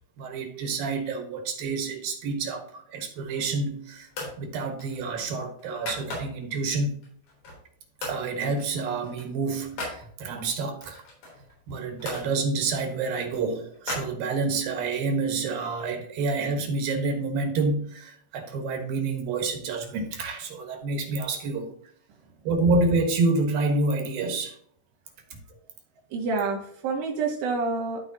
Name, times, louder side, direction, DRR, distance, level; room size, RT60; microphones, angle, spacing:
voice 1, 0.2-4.1 4.4-7.0 8.0-11.0 11.7-21.7 22.4-24.6, right 3 dB, 65° right, 2.9 m, -28 dB
sound 1, 3.1-3.7 4.1-4.4 4.8-6.6 7.0-7.7 8.0-8.2 8.6-10.0 10.8-12.3 12.8-14.7, left 2 dB, 75° left, 5.6 m, -38 dB
voice 2, 26.1-28.1, right 4 dB, 90° right, 3.9 m, -28 dB
14.0 x 4.9 x 2.8 m
omnidirectional pair, 4.7 m